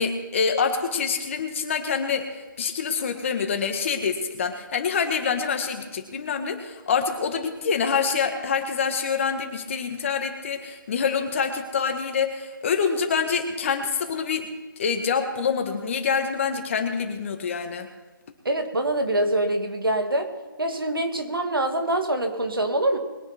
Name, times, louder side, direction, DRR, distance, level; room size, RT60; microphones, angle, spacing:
voice 1, 0.0-14.5 14.8-17.9, left 6 dB, 35° left, 5 dB, 1.9 m, -26 dB
voice 2, 18.5-20.3 20.6-23.0, right 1 dB, 90° right, 5 dB, 2.4 m, -24 dB
21.5 x 9.5 x 4.5 m, 1.2 s
figure-of-eight pair, 160°, 11 cm